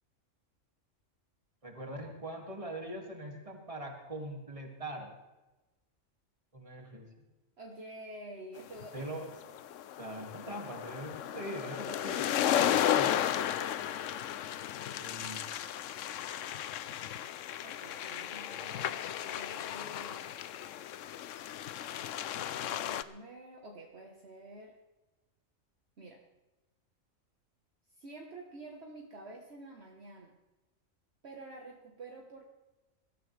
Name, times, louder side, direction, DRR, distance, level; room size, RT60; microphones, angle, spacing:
voice 1, 1.6-5.2 6.5-7.1 8.9-9.3 10.0-13.1 15.0-15.5, right 1 dB, 25° right, 1 dB, 2.5 m, -42 dB
voice 2, 7.6-9.1 12.5-14.3 17.6-20.3 22.3-24.8 26.0-26.2 27.9-30.4 31.2-32.4, right 2 dB, 55° right, 0 dB, 1.6 m, -49 dB
sound 1, 8.8-23.0, left 10 dB, 75° left, 0.9 m, -34 dB
22.0 x 14.0 x 3.4 m, 1.1 s
omnidirectional pair, 1.4 m